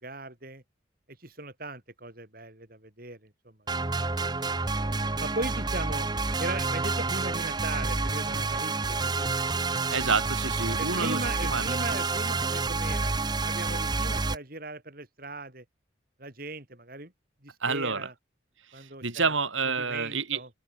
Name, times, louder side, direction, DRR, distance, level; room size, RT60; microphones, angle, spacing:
voice 1, 0.0-0.6 1.2-4.3 5.2-6.1 6.4-9.3 10.8-13.1 13.5-15.6 16.2-17.1 17.4-18.1 18.7-19.3 19.8-20.5, right 2 dB, 50° right, 4.2 m, -38 dB
sound 1, 3.7-14.4, right 3 dB, 20° right, 0.7 m, -29 dB
voice 2, 9.9-11.7 17.6-18.1 18.7-20.4, right 4 dB, 90° right, 5.7 m, -29 dB
open air
head